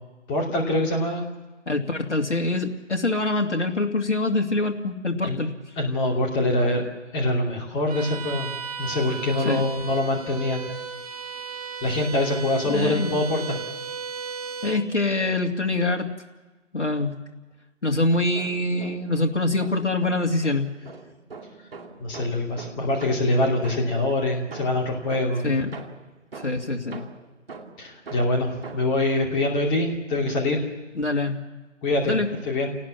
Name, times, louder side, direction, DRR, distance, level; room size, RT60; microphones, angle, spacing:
voice 1, 0.3-1.3 5.2-5.4 5.8-6.8 7.1-8.5 8.8-10.7 11.8-13.6 22.0-25.5 27.8-30.6 31.8-32.2 32.4-32.8, left 1 dB, 10° left, 1 dB, 2.6 m, -24 dB
voice 2, 1.7-5.5 9.4-9.6 12.6-13.1 14.6-16.1 16.7-17.1 17.8-20.7 25.4-25.7 26.4-27.1 31.0-31.4 32.0-32.3, left 2 dB, 65° left, 2 dB, 2.5 m, -24 dB
Bowed string instrument, 7.9-14.9, right 6 dB, 30° right, 1.4 m, -35 dB
sound 1, 18.3-19.2 19.6-24.1 24.5-29.0, right 4 dB, 50° right, 2.5 m, -42 dB
29.0 x 18.5 x 7.3 m, 1.2 s
figure-of-eight pair, 145°, 38 cm